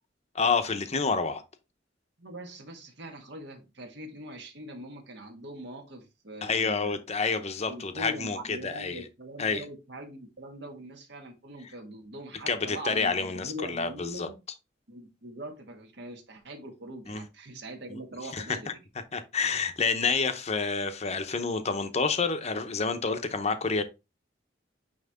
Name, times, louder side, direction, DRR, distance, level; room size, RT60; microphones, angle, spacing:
voice 1, 0.3-1.4 6.4-9.0 9.4-9.6 12.5-14.3 17.1-17.2 17.9-18.0 18.3-18.4 19.1-23.8, left 4 dB, 35° left, 0.8 m, -28 dB
voice 2, 2.2-7.0 7.7-14.4 14.9-18.8, right 1 dB, 65° right, 1.7 m, -42 dB
9.3 x 3.1 x 3.6 m
head